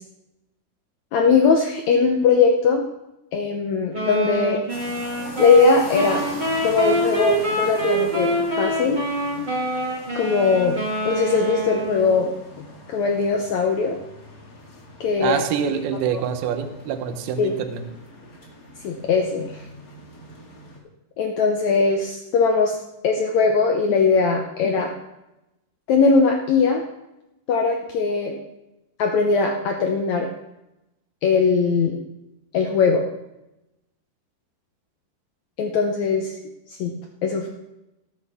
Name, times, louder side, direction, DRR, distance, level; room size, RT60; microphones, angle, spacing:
voice 1, 1.1-2.8 3.3-4.6 5.4-6.2 6.6-8.3 8.6-9.0 10.1-10.8 11.0-12.3 12.6-14.0 15.0-15.4 16.1-16.2 17.4-17.5 18.8-19.6 21.2-22.8 23.0-24.9 25.9-26.8 27.5-28.3 29.0-30.3 31.2-32.0 32.5-33.0 35.6-36.3 36.8-36.9 37.2-37.5, left 4 dB, 75° left, 2 dB, 1.7 m, -20 dB
sound 1, 3.9-12.3, right 1 dB, 20° right, 1.4 m, -26 dB
sound 2, 4.7-20.8, left 1 dB, 30° left, 1.9 m, -41 dB
voice 2, 15.2-17.8, right 8 dB, 80° right, 7 dB, 2.8 m, -25 dB
18.5 x 8.9 x 3.6 m, 0.93 s
omnidirectional pair, 4.5 m